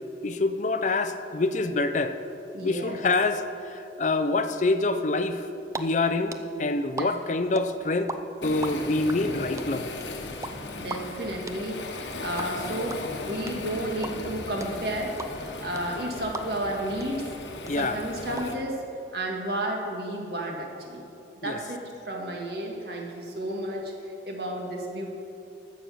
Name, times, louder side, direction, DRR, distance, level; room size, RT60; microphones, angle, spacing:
voice 1, 0.2-2.2 2.6-5.5 5.8-8.1 8.4-9.9 17.7-18.0 21.4-21.6, left 3 dB, 45° left, 10 dB, 0.5 m, -26 dB
voice 2, 2.5-3.0 7.0-7.1 10.8-17.2 17.8-18.8 19.1-21.0 21.4-21.8 22.1-25.1, right 1 dB, 60° right, 0 dB, 2.0 m, -32 dB
sound 1, 5.7-5.8 6.1-8.2 8.4-16.7 17.0-17.1 17.4-18.4, right 3 dB, 15° right, 0.5 m, -36 dB
Waves surf, 8.4-18.6, left 2 dB, 90° left, 1.2 m, -37 dB
14.5 x 6.6 x 6.4 m, 2.7 s
head